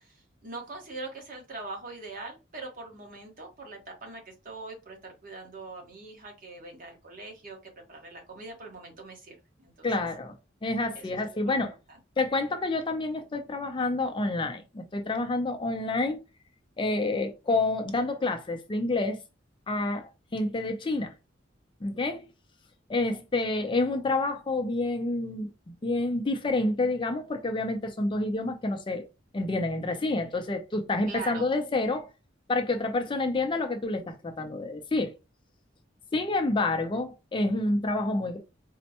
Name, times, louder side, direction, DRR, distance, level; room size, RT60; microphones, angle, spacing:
voice 1, 0.0-7.6 7.9-10.1 10.9-11.6 31.0-31.5, right 3 dB, 45° right, 1.1 m, -42 dB
voice 2, 9.8-10.4 10.6-11.7 12.2-16.2 16.8-19.2 19.7-21.1 21.8-22.2 22.9-29.1 29.3-32.1 32.5-35.1 36.1-38.4, left 2 dB, 25° left, 0.4 m, -28 dB
4.2 x 2.1 x 2.8 m
head